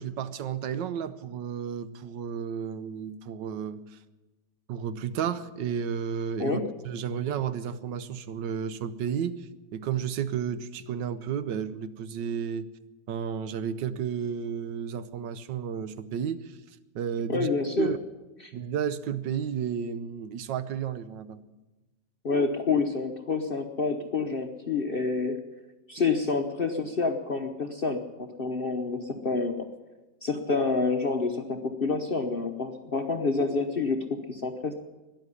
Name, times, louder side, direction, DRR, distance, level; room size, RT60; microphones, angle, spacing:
voice 1, 0.0-3.8 4.7-6.6 6.8-12.7 13.1-16.5 16.9-17.5 17.8-18.0 18.5-21.4, right 8 dB, 80° right, 13 dB, 1.4 m, -32 dB
voice 2, 17.3-17.9 18.4-18.5 22.2-25.4 25.9-29.6 30.2-34.7, left 4 dB, 45° left, 4 dB, 0.8 m, -28 dB
13.5 x 10.5 x 9.7 m, 1.1 s
omnidirectional pair, 2.0 m